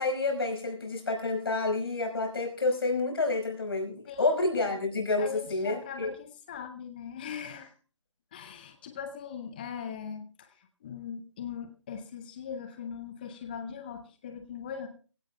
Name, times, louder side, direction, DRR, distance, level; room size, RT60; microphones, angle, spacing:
voice 1, 0.0-6.1, left 3 dB, 50° left, 2 dB, 5.5 m, -29 dB
voice 2, 4.1-4.4 5.2-7.7 8.3-14.9, left 7 dB, 20° left, 8 dB, 0.7 m, -40 dB
23.0 x 16.5 x 2.3 m, 0.36 s
figure-of-eight pair, 150°, 16 cm